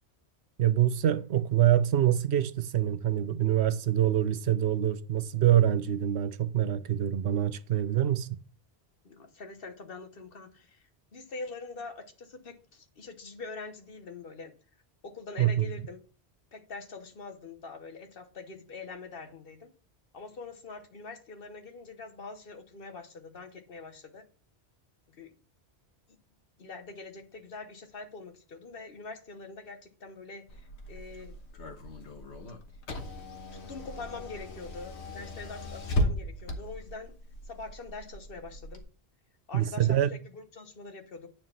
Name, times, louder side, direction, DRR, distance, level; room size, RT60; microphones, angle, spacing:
voice 1, 0.6-8.3 15.4-15.7 39.5-40.1, right 11 dB, 80° right, 0.9 m, -25 dB
voice 2, 9.0-14.5 15.0-16.0 16.5-19.7 20.1-24.2 25.1-25.3 26.6-31.4 33.5-37.1 37.5-38.8 39.5-41.3, left 3 dB, 60° left, 1.2 m, -44 dB
Car / Engine, 30.5-38.8, left 1 dB, 85° left, 1.5 m, -36 dB
9.2 x 4.4 x 5.6 m
omnidirectional pair, 1.1 m